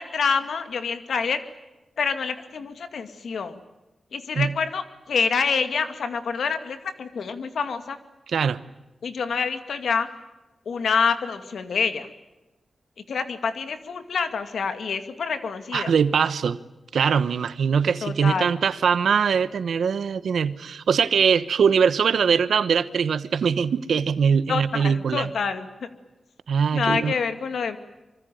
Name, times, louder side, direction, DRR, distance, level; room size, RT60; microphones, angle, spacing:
voice 1, 0.0-1.4 2.0-3.6 4.1-8.0 9.0-10.1 10.7-12.1 13.1-15.9 18.0-18.5 24.5-25.9 26.7-27.8, left 5 dB, 80° left, 9 dB, 2.2 m, -27 dB
voice 2, 8.3-8.6 15.7-16.6 16.9-25.3 26.5-27.1, right 6 dB, 85° right, 15 dB, 1.1 m, -22 dB
25.0 x 25.0 x 9.3 m, 1.0 s
cardioid pair, 45°, 0 cm